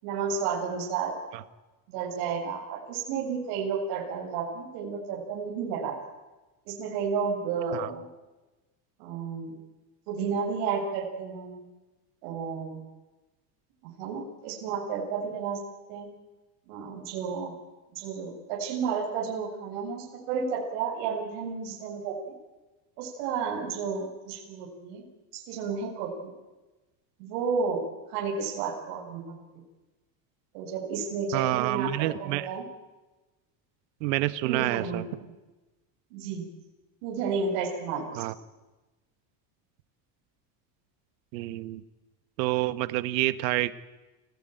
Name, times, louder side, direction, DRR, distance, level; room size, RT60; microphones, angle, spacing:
voice 1, 0.0-1.1 1.9-6.0 6.7-8.1 9.0-9.6 10.1-11.7 12.2-12.9 13.8-15.6 15.9-16.1 16.7-17.5 17.9-22.2 23.0-25.0 25.3-26.3 27.2-29.4 30.5-32.7 34.4-35.0 36.1-36.4 37.0-38.2, right 5 dB, 65° right, -2 dB, 7.4 m, -32 dB
voice 2, 31.3-32.5 34.0-35.0 38.2-38.3 41.3-41.8 42.4-43.7, right 17 dB, 90° right, 13 dB, 1.6 m, -28 dB
28.5 x 17.5 x 9.3 m, 1.2 s
cardioid pair, 160°, 49 cm